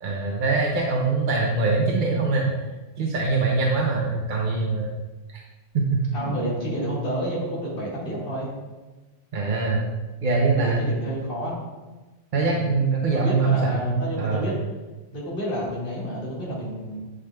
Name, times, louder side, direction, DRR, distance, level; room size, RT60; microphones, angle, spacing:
voice 1, 0.0-2.5 3.0-4.9 5.3-5.4 5.7-6.3 9.3-9.9 10.2-10.8 12.3-14.5, right 3 dB, 50° right, -1 dB, 0.7 m, -23 dB
voice 2, 6.1-8.5 10.5-11.6 12.5-12.7 13.1-14.5 15.1-17.0, equal, 40° left, -6 dB, 2.1 m, -29 dB
10.0 x 5.1 x 2.2 m, 1.2 s
omnidirectional pair, 1.5 m